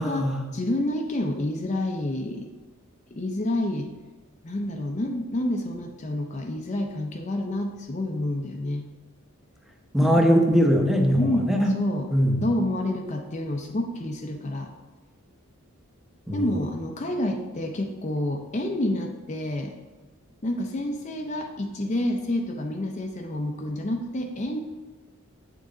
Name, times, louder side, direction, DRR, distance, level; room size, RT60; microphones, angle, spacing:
voice 1, 0.0-0.4 9.9-11.7 12.1-12.4 16.3-16.5, equal, ahead, 1 dB, 0.9 m, -21 dB
voice 2, 0.5-2.5 3.1-3.9 4.4-8.9 10.0-10.1 11.2-12.1 12.4-14.7 16.3-19.7 20.4-24.6, left 1 dB, 30° left, 3 dB, 0.5 m, -28 dB
8.4 x 6.3 x 3.8 m, 1.2 s
head